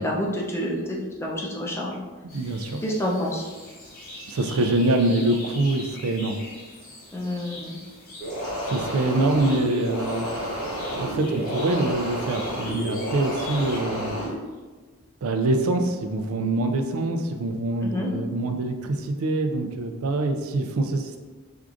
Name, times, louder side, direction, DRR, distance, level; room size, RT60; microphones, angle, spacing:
voice 1, 0.0-1.9 2.8-3.4 7.1-7.8 17.8-18.1, left 1 dB, 10° left, -3 dB, 0.5 m, -28 dB
sound 1, 2.3-13.8, left 1 dB, 45° left, 1.1 m, -42 dB
voice 2, 2.3-2.8 4.3-6.4 8.6-10.3 10.9-14.2 15.2-21.2, right 2 dB, 75° right, 6 dB, 0.4 m, -25 dB
sound 2, 8.2-14.3, equal, 80° left, 1.2 m, -30 dB
4.6 x 2.4 x 2.5 m, 1.3 s
head